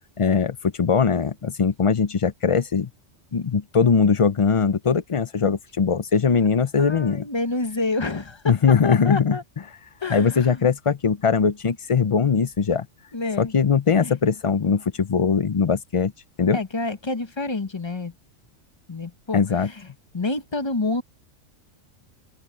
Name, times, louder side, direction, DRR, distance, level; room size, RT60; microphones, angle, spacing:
voice 1, 0.2-2.9 3.3-7.3 8.5-9.4 10.1-12.9 13.4-16.1 16.4-16.6 19.3-19.7, left 6 dB, 45° left, 0.4 m, -21 dB
voice 2, 6.8-9.4 10.0-10.7 13.1-13.5 14.0-14.2 16.5-18.1 18.9-19.9 20.1-21.0, left 3 dB, 25° left, 1.0 m, -28 dB
open air
omnidirectional pair, 1.3 m